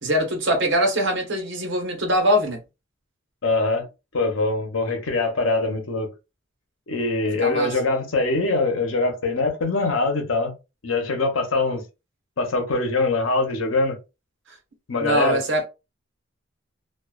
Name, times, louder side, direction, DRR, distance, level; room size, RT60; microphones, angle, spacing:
voice 1, 0.0-2.6 7.4-7.8 15.0-15.6, equal, 65° right, 1.0 m, -22 dB
voice 2, 3.4-3.9 4.1-6.1 6.9-10.5 10.8-11.8 12.4-14.0 14.9-15.4, left 3 dB, 85° left, 0.8 m, -23 dB
2.3 x 2.2 x 2.3 m
head